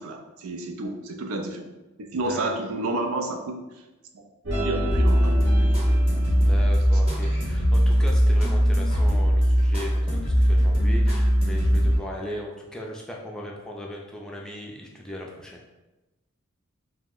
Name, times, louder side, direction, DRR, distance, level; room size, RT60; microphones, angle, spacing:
voice 1, 0.0-1.7 2.0-3.6 4.1-4.2 4.6-5.8, right 2 dB, 90° right, 4 dB, 0.4 m, -31 dB
voice 2, 2.2-2.6 6.5-15.6, left 1 dB, 5° left, -2 dB, 0.3 m, -37 dB
sound 1, 4.5-6.8 7.2-7.6, equal, 60° right, 0.7 m, -31 dB
sound 2, 4.9-12.0, equal, 25° right, 0.8 m, -20 dB
2.7 x 2.0 x 3.6 m, 1.0 s
head